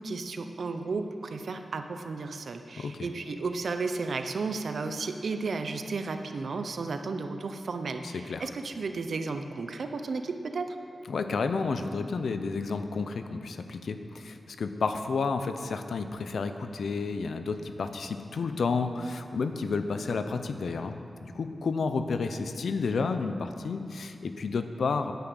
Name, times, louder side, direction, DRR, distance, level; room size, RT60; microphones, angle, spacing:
voice 1, 0.0-10.8, right 4 dB, 75° right, 7 dB, 0.8 m, -33 dB
voice 2, 2.8-3.1 8.0-8.5 11.1-25.1, left 4 dB, 90° left, 8 dB, 0.7 m, -31 dB
9.9 x 9.5 x 8.1 m, 2.6 s
wide cardioid pair, 115°, 0 cm